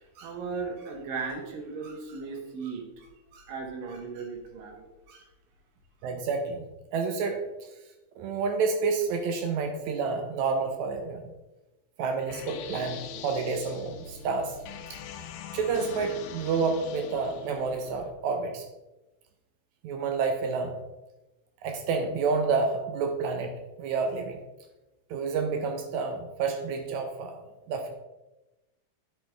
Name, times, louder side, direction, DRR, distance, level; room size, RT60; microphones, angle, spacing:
voice 1, 0.0-5.3, right 4 dB, 75° right, 2 dB, 2.7 m, -37 dB
voice 2, 6.0-7.7 8.2-11.3 12.0-14.6 15.5-18.7 19.8-20.8 21.6-24.4 25.1-27.9, right 4 dB, 90° right, 4 dB, 1.6 m, -29 dB
sound 1, 12.3-18.1, left 7 dB, 80° left, 2.2 m, -43 dB
10.5 x 5.2 x 3.4 m, 1.0 s
omnidirectional pair, 4.2 m